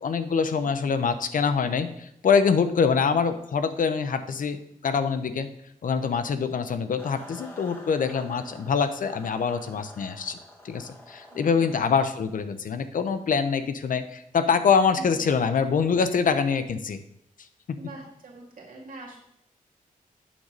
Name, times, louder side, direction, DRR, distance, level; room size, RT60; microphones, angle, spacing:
voice 1, 0.0-5.5 5.8-10.4 10.6-17.0, left 6 dB, 70° left, 10 dB, 0.7 m, -24 dB
sound 1, 7.0-12.0, left 1 dB, 15° left, 2.0 m, -48 dB
voice 2, 11.3-11.9 15.0-15.2 17.8-19.2, right 2 dB, 70° right, -2 dB, 2.4 m, -44 dB
9.1 x 4.0 x 6.5 m, 0.76 s
wide cardioid pair, 95°, 14 cm